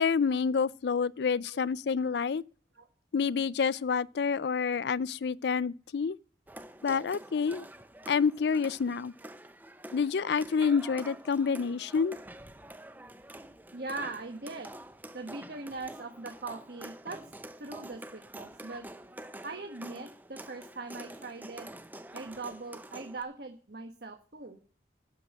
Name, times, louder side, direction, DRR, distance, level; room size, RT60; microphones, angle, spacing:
voice 1, 0.0-2.4 3.1-6.2 6.8-7.7 8.1-9.1 9.9-12.2, left 6 dB, 65° left, 0.4 m, -28 dB
sound 1, 6.5-23.2, right 1 dB, 10° right, 0.8 m, -47 dB
voice 2, 13.7-14.7 15.1-17.2 17.6-18.8 19.4-21.7 22.1-24.6, right 3 dB, 60° right, 1.3 m, -41 dB
9.5 x 7.0 x 7.5 m
head